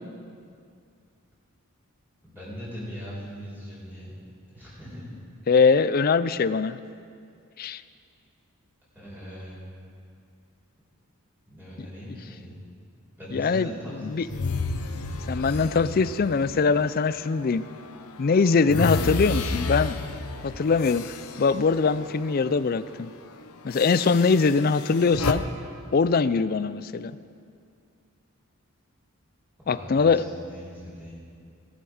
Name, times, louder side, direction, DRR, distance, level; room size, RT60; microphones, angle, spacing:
voice 1, 2.2-4.2 4.5-5.1 8.9-9.6 11.5-12.5 13.2-14.4 29.6-31.1, equal, 10° right, -9 dB, 4.6 m, -40 dB
voice 2, 5.5-6.8 7.6-7.8 13.3-13.7 14.0-14.2 15.3-17.6 18.2-20.0 20.4-23.1 23.6-25.4 25.9-27.2 29.7-30.2, left 4 dB, 40° left, 15 dB, 0.4 m, -22 dB
sound 1, 14.3-17.6 18.0-22.4 22.7-22.9 23.7-25.3, left 3 dB, 80° left, 0.8 m, -32 dB
18.5 x 11.5 x 4.9 m, 2.3 s
head